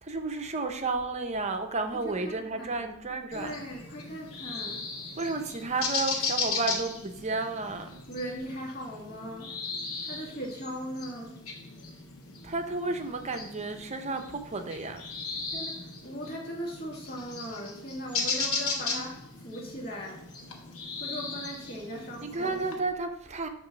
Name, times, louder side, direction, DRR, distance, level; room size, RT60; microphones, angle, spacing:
voice 1, 0.0-3.6 5.2-7.9 12.4-15.0 22.2-23.5, right 3 dB, 30° right, 6 dB, 0.7 m, -32 dB
voice 2, 2.0-2.9 3.3-4.8 8.1-9.5 10.0-11.4 15.5-20.2 21.0-22.7, equal, 45° left, -2 dB, 2.0 m, -39 dB
sound 1, 3.3-22.7, left 4 dB, 75° left, 1.3 m, -37 dB
8.7 x 3.0 x 5.9 m, 0.77 s
head